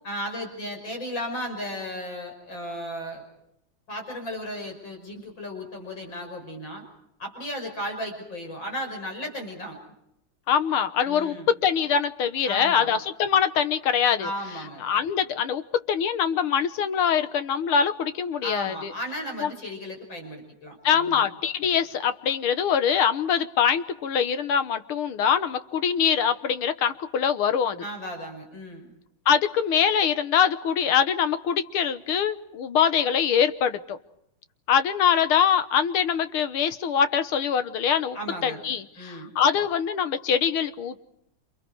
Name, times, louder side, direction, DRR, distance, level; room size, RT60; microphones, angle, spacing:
voice 1, 0.0-3.2 3.9-6.8 7.2-9.8 11.0-11.5 12.4-12.9 14.2-14.8 18.4-21.3 27.8-28.9 38.1-38.6 39.0-39.3, equal, 60° left, 3 dB, 6.4 m, -35 dB
voice 2, 10.5-14.3 14.8-18.9 19.4-19.5 20.8-27.8 29.3-34.0 34.7-38.2 38.4-41.0, left 8 dB, 85° left, 11 dB, 2.1 m, -23 dB
29.0 x 28.5 x 4.8 m, 0.80 s
omnidirectional pair, 2.3 m